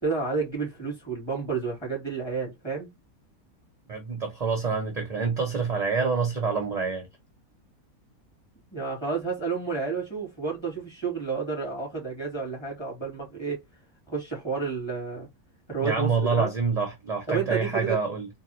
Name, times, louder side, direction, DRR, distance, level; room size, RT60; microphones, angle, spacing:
voice 1, 0.0-2.9 8.7-13.6 14.1-15.3 15.7-16.5 17.3-18.0, right 5 dB, 20° left, 2.5 m, -30 dB
voice 2, 3.9-7.1 15.8-18.3, right 4 dB, 40° right, 0.6 m, -27 dB
4.0 x 2.7 x 3.0 m
omnidirectional pair, 1.5 m